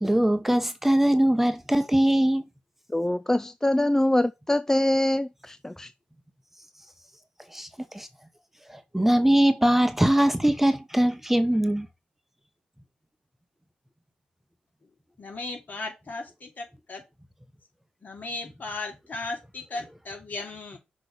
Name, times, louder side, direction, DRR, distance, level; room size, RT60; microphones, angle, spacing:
voice 1, 0.0-2.4 7.5-7.7 7.9-8.1 8.9-11.9, right 1 dB, 5° right, 1.0 m, -21 dB
voice 2, 2.9-5.9, left 1 dB, 10° left, 0.3 m, -24 dB
voice 3, 15.2-17.0 18.0-20.8, left 3 dB, 50° left, 2.6 m, -36 dB
6.1 x 3.2 x 5.1 m
hypercardioid pair, 45°, 4 cm